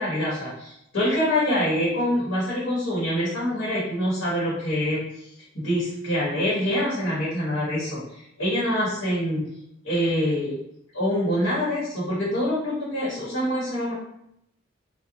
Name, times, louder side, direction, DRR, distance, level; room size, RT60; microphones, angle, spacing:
voice 1, 0.0-5.0 5.5-8.0 8.4-9.5 9.8-10.6 10.9-13.9, equal, 75° left, -8 dB, 1.1 m, -25 dB
2.4 x 2.1 x 2.8 m, 0.77 s
head